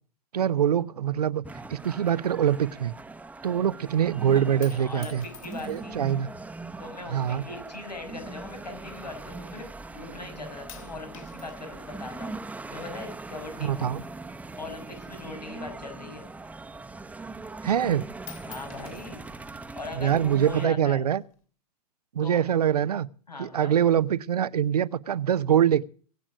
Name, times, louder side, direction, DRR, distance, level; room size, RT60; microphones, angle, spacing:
voice 1, 0.3-1.4 1.7-2.9 3.4-5.3 5.7-6.3 7.1-7.4 13.6-14.0 17.6-18.1 20.0-21.2 22.1-23.1 23.4-25.8, right 9 dB, 70° right, 0.8 m, -24 dB
sound 1, 1.4-20.7, right 3 dB, 5° right, 1.1 m, -41 dB
voice 2, 4.3-6.0 6.8-12.3 12.7-13.9 14.6-16.3 18.5-19.2 19.8-21.0 22.2-22.4 23.3-23.8, left 3 dB, 85° left, 5.9 m, -40 dB
sound 2, 4.6-6.1 6.9-7.4 8.2-9.6 9.9-10.3 10.7-14.8 15.0-16.7 17.1-17.2 17.5-17.9 18.2-20.0 20.8-21.4, left 10 dB, 60° left, 3.1 m, -51 dB
23.5 x 8.7 x 5.0 m
figure-of-eight pair, 100°, 20 cm